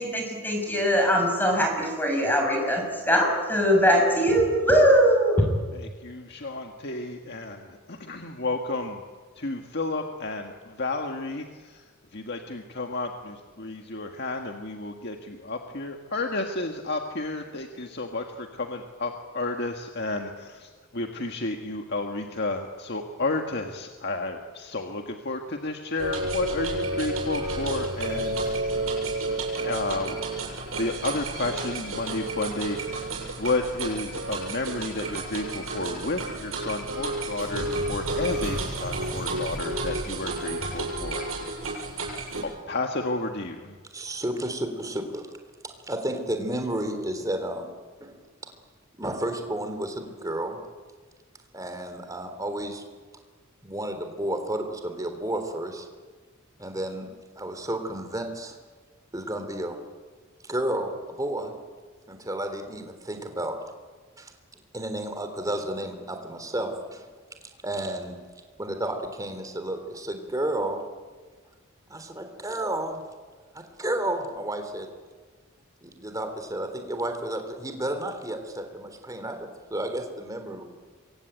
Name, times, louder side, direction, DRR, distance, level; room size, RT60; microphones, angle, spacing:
voice 1, 0.0-5.4, equal, 10° left, 2 dB, 6.8 m, -21 dB
voice 2, 5.7-9.0 9.4-11.8 12.1-28.8 29.6-30.2 30.8-41.3 42.4-43.8, left 2 dB, 55° left, 3 dB, 1.8 m, -32 dB
sound 1, 26.0-42.4, right 2 dB, 85° right, 7.5 m, -31 dB
voice 3, 43.9-45.3 45.6-47.7 48.0-48.2 49.0-50.6 51.5-52.8 53.6-55.9 56.6-57.1 57.3-58.5 59.1-59.8 60.4-61.5 62.1-63.6 64.2-64.3 64.7-67.0 67.6-68.2 68.6-70.8 71.9-73.0 73.5-74.9 75.8-80.6, right 1 dB, 15° right, 6 dB, 3.4 m, -31 dB
27.0 x 23.5 x 9.2 m, 1.4 s
head